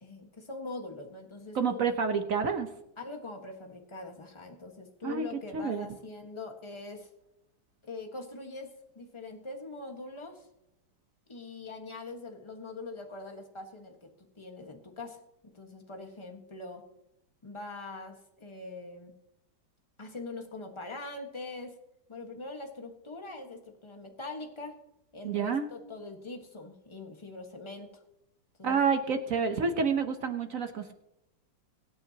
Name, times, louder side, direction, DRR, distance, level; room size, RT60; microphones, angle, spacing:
voice 1, 0.0-1.8 3.0-7.1 7.8-10.5 11.3-14.1 14.3-15.2 15.5-16.8 17.4-19.2 20.0-21.8 22.1-24.7 25.1-28.0 28.6-28.8, left 2 dB, 15° left, 3 dB, 1.3 m, -43 dB
voice 2, 1.5-2.7 5.0-5.3 5.5-5.9 25.2-25.7 28.6-30.9, right 5 dB, 55° right, 7 dB, 1.1 m, -28 dB
24.0 x 8.9 x 2.9 m, 0.87 s
omnidirectional pair, 2.0 m